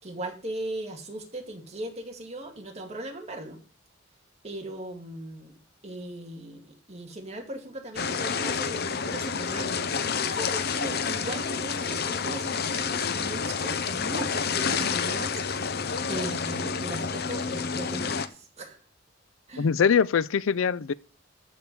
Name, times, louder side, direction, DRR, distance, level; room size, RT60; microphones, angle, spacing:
voice 1, 0.0-3.6 4.4-5.6 5.8-9.8 10.2-15.4 16.1-18.8 19.5-19.7, right 1 dB, 35° right, 2.3 m, -38 dB
sound 1, 8.0-18.3, left 5 dB, 50° left, 0.8 m, -29 dB
voice 2, 19.6-20.9, left 6 dB, 85° left, 0.5 m, -23 dB
13.5 x 4.7 x 6.9 m
head